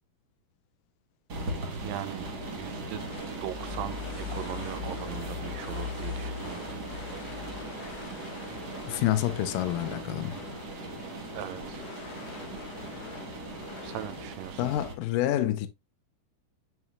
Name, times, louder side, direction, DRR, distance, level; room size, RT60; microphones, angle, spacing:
sound 1, 1.3-14.9, right 1 dB, 45° right, 1.4 m, -38 dB
voice 1, 1.8-3.0 3.4-6.7 11.3-11.9 13.8-14.7, right 13 dB, 80° right, 2.1 m, -39 dB
sound 2, 2.2-14.4, left 5 dB, 55° left, 2.1 m, -44 dB
voice 2, 8.9-10.5 14.6-15.7, left 13 dB, 75° left, 2.1 m, -28 dB
9.0 x 6.2 x 2.4 m
omnidirectional pair, 4.4 m